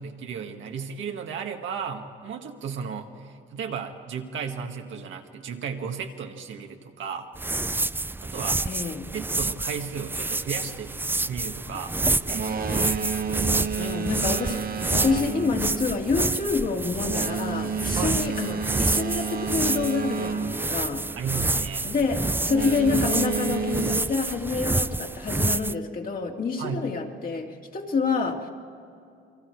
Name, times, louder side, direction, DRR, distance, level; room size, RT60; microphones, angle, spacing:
voice 1, 0.0-7.3 8.2-8.6 9.1-12.0 13.7-13.9 18.0-18.2 21.2-21.9 26.6-26.9, right 6 dB, 75° right, 3 dB, 1.8 m, -34 dB
sound 1, 7.4-25.7, right 2 dB, 10° right, 0.4 m, -28 dB
voice 2, 8.7-9.0 13.8-21.0 21.8-28.5, left 4 dB, 45° left, 1 dB, 2.5 m, -28 dB
Boat Water vehicle, 12.2-21.6 22.4-24.0, right 6 dB, 50° right, 1.2 m, -31 dB
29.5 x 23.0 x 4.7 m, 2.5 s
cardioid pair, 90°, 20 cm